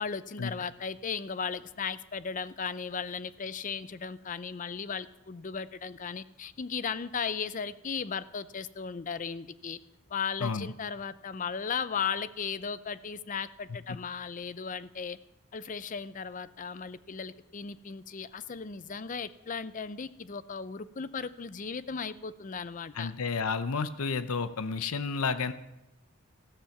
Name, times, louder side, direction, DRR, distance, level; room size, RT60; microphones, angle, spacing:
voice 1, 0.0-9.8 10.1-15.2 15.5-23.1, left 6 dB, 35° left, 15 dB, 0.5 m, -36 dB
voice 2, 22.9-25.5, left 5 dB, 80° left, 12 dB, 0.7 m, -31 dB
15.0 x 13.0 x 5.9 m, 0.94 s
head